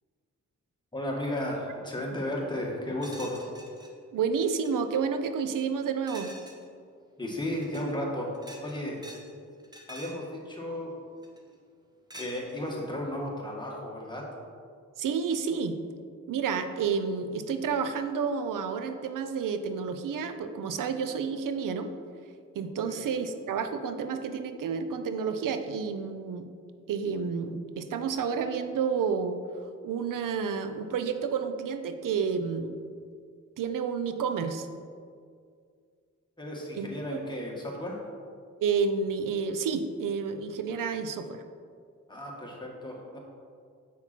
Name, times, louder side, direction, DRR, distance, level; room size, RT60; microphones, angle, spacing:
voice 1, 0.9-3.5 7.2-8.3 8.6-9.0 9.9-10.9 12.1-14.2 22.9-23.0 36.4-38.0 42.1-43.2, left 1 dB, 15° left, -2 dB, 2.0 m, -34 dB
sound 1, 3.0-3.9 4.3-4.7 6.1-6.6 7.5-7.9 8.3-9.3 9.6-10.3 11.2-11.5 12.1-12.8, right 1 dB, 15° right, 1.1 m, -47 dB
voice 2, 4.1-6.3 15.0-15.8 16.3-21.9 22.5-26.5 26.9-29.4 29.8-32.8 33.6-34.7 36.8-37.2 38.6-41.4, right 6 dB, 85° right, 8 dB, 0.6 m, -30 dB
7.4 x 5.8 x 4.5 m, 2.2 s
cardioid pair, 65°, 31 cm